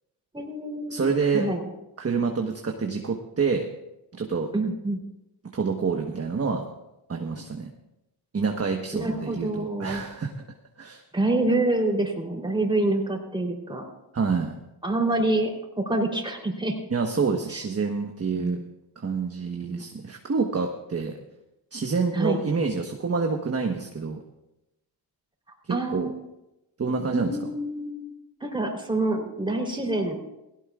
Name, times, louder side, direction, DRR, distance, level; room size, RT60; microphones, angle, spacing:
voice 1, 0.3-1.6 4.5-5.0 8.9-10.0 11.1-13.8 14.8-16.8 18.4-18.6 19.6-19.8 22.1-22.4 25.7-26.1 27.1-28.0 28.4-30.2, right 2 dB, 10° right, 1 dB, 3.6 m, -27 dB
voice 2, 0.9-1.5 2.0-3.7 4.1-4.5 5.5-6.6 7.1-7.7 8.3-10.3 10.8-11.0 14.1-14.5 16.9-18.6 19.0-21.1 21.7-24.2 25.7-26.1 26.8-27.4, right 5 dB, 30° right, 3 dB, 1.3 m, -27 dB
17.5 x 16.5 x 2.4 m, 0.91 s
cardioid pair, 70°, 50 cm